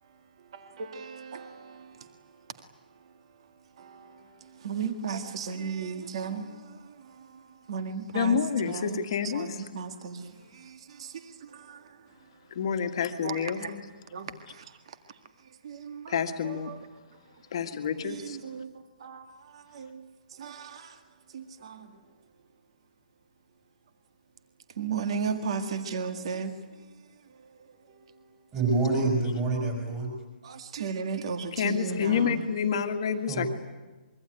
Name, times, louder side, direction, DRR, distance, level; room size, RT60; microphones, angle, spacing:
voice 1, 0.0-12.4 13.2-22.1 24.7-28.5 30.4-32.5, right 5 dB, 35° right, 1.8 m, -37 dB
voice 2, 8.1-9.5 12.6-13.8 16.1-16.7 17.5-18.4 31.6-33.5, left 7 dB, 30° left, 1.8 m, -28 dB
voice 3, 28.5-30.1 33.3-33.5, right 3 dB, 10° right, 4.9 m, -26 dB
25.0 x 23.5 x 9.3 m
hypercardioid pair, 175°, 5 cm